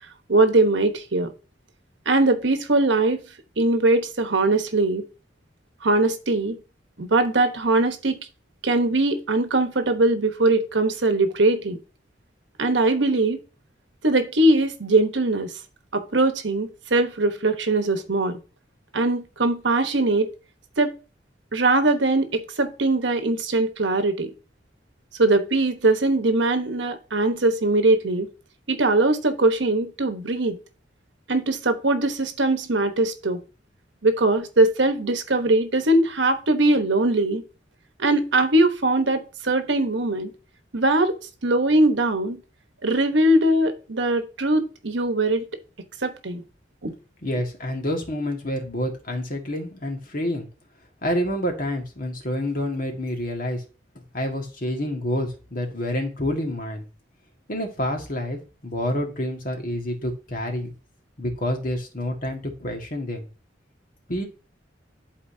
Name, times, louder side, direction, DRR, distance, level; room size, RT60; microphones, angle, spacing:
voice 1, 0.3-1.3 2.1-3.2 3.6-5.0 5.8-6.6 7.0-8.3 8.6-11.8 12.6-13.4 14.0-15.5 15.9-18.4 18.9-20.3 20.8-20.9 21.5-24.3 25.2-28.3 28.7-30.6 31.3-33.4 34.0-37.4 38.0-40.3 40.7-41.2 41.4-42.4 42.8-45.5 46.0-46.4 46.8-46.9, right 2 dB, 75° right, 1.1 m, -21 dB
voice 2, 47.2-50.5 51.0-53.6 54.0-56.9 57.5-60.7 61.2-63.3 64.1-64.3, left 1 dB, 50° left, 1.8 m, -28 dB
11.5 x 4.2 x 2.7 m
head